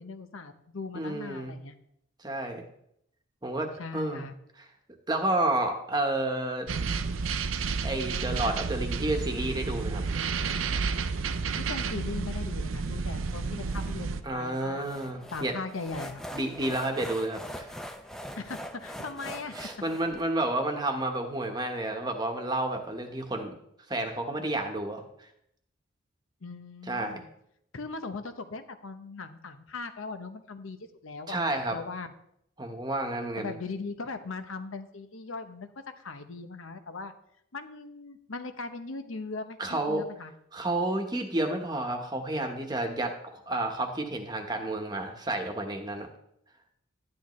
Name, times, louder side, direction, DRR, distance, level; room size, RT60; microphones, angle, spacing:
voice 1, 0.0-1.7 3.8-4.3 11.5-14.8 15.3-16.2 18.4-19.6 26.4-27.3 27.7-30.8 31.0-31.4 31.7-32.1 33.4-35.7 36.0-37.1 37.5-40.3, left 3 dB, 80° left, 8 dB, 0.9 m, -39 dB
voice 2, 0.9-1.5 2.2-2.6 3.4-3.7 3.9-4.3 5.1-6.7 7.8-10.0 14.2-15.5 16.3-17.7 19.5-23.5 23.9-25.0 26.9-27.2 31.3-31.8 32.6-33.5 39.6-40.1 40.5-46.1, right 2 dB, 20° right, 4 dB, 1.1 m, -30 dB
sound 1, 6.7-14.2, right 4 dB, 80° right, 0.6 m, -31 dB
sound 2, 13.3-20.2, equal, 5° left, 0.6 m, -43 dB
11.5 x 10.5 x 3.2 m, 0.74 s
head